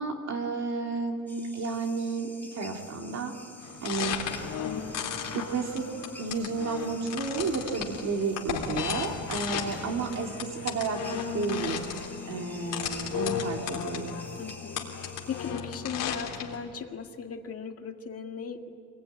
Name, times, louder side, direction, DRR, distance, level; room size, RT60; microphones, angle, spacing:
voice 1, 0.0-3.3 3.8-4.2 5.3-5.9 6.2-11.8 12.3-14.2, right 4 dB, 55° right, 2 dB, 2.5 m, -32 dB
sound 1, 1.3-15.5, left 2 dB, 5° left, 1.5 m, -49 dB
sound 2, 3.6-16.6, left 7 dB, 80° left, 3.6 m, -35 dB
voice 2, 14.4-18.7, left 6 dB, 45° left, 4 dB, 1.9 m, -38 dB
27.0 x 21.0 x 10.0 m, 2.3 s
cardioid pair, 175°, 32 cm